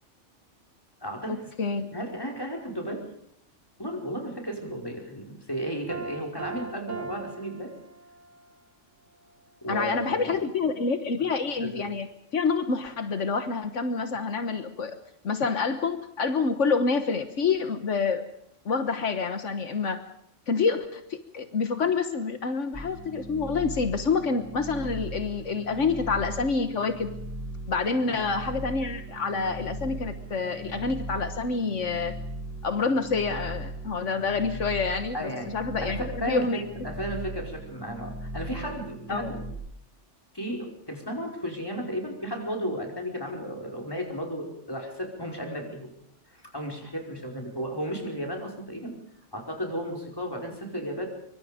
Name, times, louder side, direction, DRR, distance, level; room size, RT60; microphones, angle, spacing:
voice 1, 1.0-1.4 1.9-3.0 3.8-7.7 9.6-10.3 11.6-11.9 28.1-28.3 35.1-35.5 35.8-39.4 40.3-45.9 46.3-48.9 49.3-51.1, equal, 20° left, 1 dB, 5.2 m, -34 dB
Piano, 5.9-8.4, right 4 dB, 80° right, 2.2 m, -39 dB
voice 2, 9.7-12.1 12.3-15.0 15.2-18.2 18.6-20.0 20.5-27.1 27.7-32.1 32.6-36.7 39.1-39.3, left 4 dB, 80° left, 8 dB, 1.7 m, -27 dB
sound 1, 22.7-39.5, right 1 dB, 10° right, 6.1 m, -38 dB
25.0 x 24.0 x 5.2 m, 0.71 s
omnidirectional pair, 1.2 m